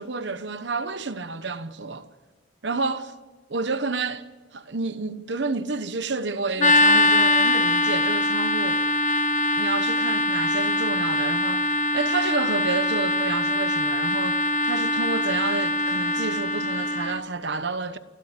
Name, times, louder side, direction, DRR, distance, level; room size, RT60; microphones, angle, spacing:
voice 1, 0.0-2.1 2.6-3.1 3.5-4.2 4.5-8.8 9.6-18.0, right 3 dB, 65° right, 1.1 m, -30 dB
sound 1, 6.6-17.2, left 2 dB, 40° left, 0.9 m, -22 dB
29.0 x 13.0 x 8.3 m
head